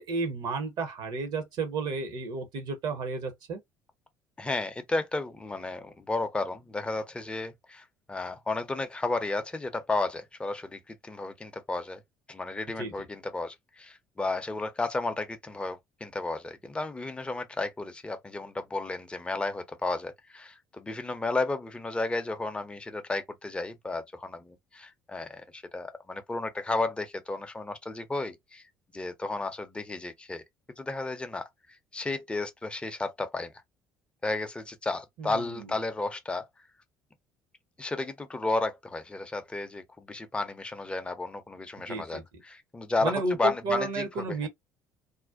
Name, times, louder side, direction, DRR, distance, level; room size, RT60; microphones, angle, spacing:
voice 1, 0.0-3.6 12.8-12.9 35.2-35.7 41.9-42.2 43.0-44.5, right 3 dB, 50° right, 0.7 m, -32 dB
voice 2, 4.4-12.0 12.3-28.6 28.9-30.4 30.8-33.5 34.2-36.5 37.8-44.5, left 2 dB, 10° left, 0.5 m, -33 dB
2.5 x 2.1 x 2.4 m
figure-of-eight pair, 55°, 10 cm